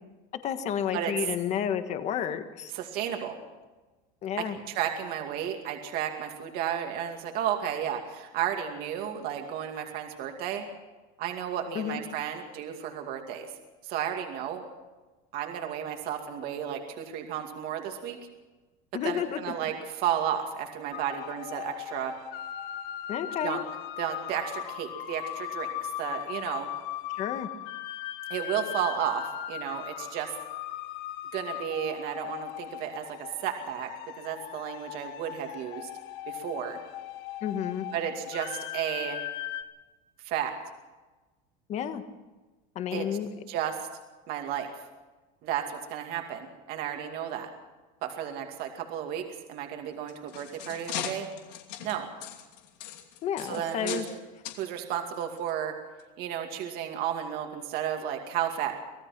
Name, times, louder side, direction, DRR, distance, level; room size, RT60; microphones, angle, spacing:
voice 1, 0.4-2.7 4.2-4.6 11.7-12.0 18.9-19.4 23.1-23.6 27.1-27.5 37.4-37.9 41.7-42.0 42.7-43.3 53.2-54.0, left 9 dB, 35° left, 9 dB, 1.5 m, -31 dB
voice 2, 2.7-3.3 4.7-10.7 11.2-13.5 13.8-14.6 15.3-18.2 19.0-22.1 23.4-23.6 24.0-26.7 28.3-30.3 31.3-33.2 33.4-33.9 34.2-35.9 36.3-36.8 37.9-39.2 40.2-40.5 42.9-43.1 43.5-43.9 44.3-44.7 45.4-47.5 48.0-51.3 51.8-52.1 53.5-54.0 54.6-55.7 56.2-58.8, right 10 dB, 50° right, 4 dB, 2.4 m, -33 dB
sound 1, 20.9-39.6, left 13 dB, 55° left, 1.4 m, -38 dB
sound 2, 49.9-54.2 54.4-54.6 55.4-55.5 56.0-56.1, left 11 dB, 85° left, 2.7 m, -39 dB
25.0 x 17.5 x 6.0 m, 1.2 s
cardioid pair, 165°, 21 cm